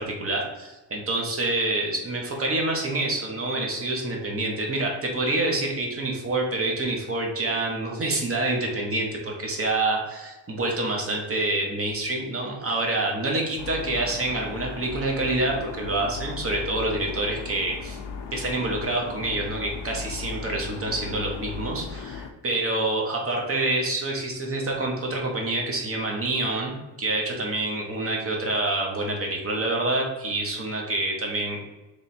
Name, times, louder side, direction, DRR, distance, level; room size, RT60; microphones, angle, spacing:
voice 1, 0.0-18.0 18.3-31.6, right 2 dB, 30° right, 0 dB, 1.2 m, -27 dB
sound 1, 13.6-22.3, left 5 dB, 75° left, 0.7 m, -37 dB
3.4 x 3.3 x 4.3 m, 1.1 s
cardioid pair, 115°, 43 cm